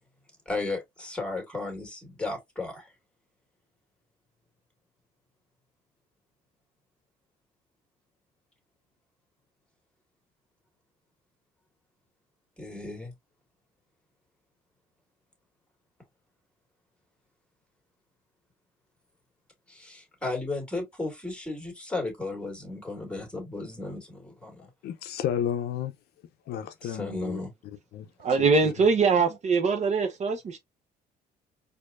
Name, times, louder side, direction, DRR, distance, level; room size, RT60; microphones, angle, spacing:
voice 1, 0.5-2.9 12.6-13.1 19.7-24.7 26.8-27.5, left 2 dB, 5° left, 2.0 m, -34 dB
voice 2, 24.8-25.9 26.5-27.4 27.9-28.7, left 10 dB, 75° left, 0.6 m, -32 dB
voice 3, 28.2-30.6, right 4 dB, 45° right, 0.9 m, -23 dB
4.4 x 2.7 x 2.4 m
cardioid pair, 110°, 17 cm